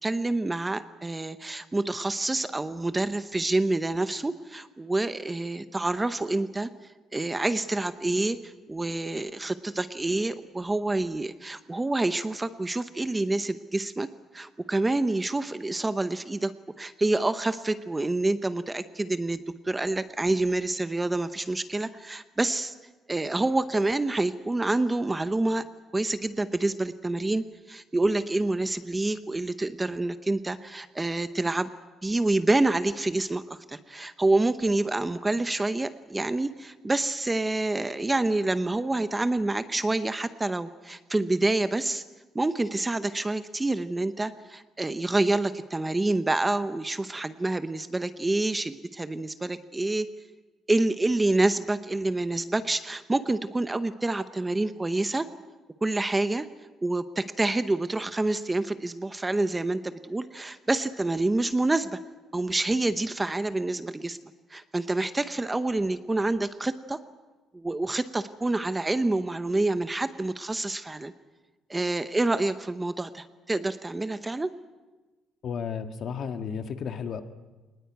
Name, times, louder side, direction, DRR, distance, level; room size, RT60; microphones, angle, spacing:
voice 1, 0.0-6.7 7.1-14.1 14.3-16.5 16.8-22.7 23.1-25.6 25.9-31.7 32.0-42.0 42.3-50.1 50.7-55.3 55.8-56.5 56.8-62.0 62.3-64.2 64.5-67.0 67.5-71.1 71.7-74.5, right 2 dB, 10° right, 11 dB, 0.7 m, -27 dB
voice 2, 75.4-77.2, left 6 dB, 50° left, 7 dB, 1.6 m, -33 dB
23.5 x 20.0 x 9.2 m, 1.2 s
cardioid pair, 155°, 0 cm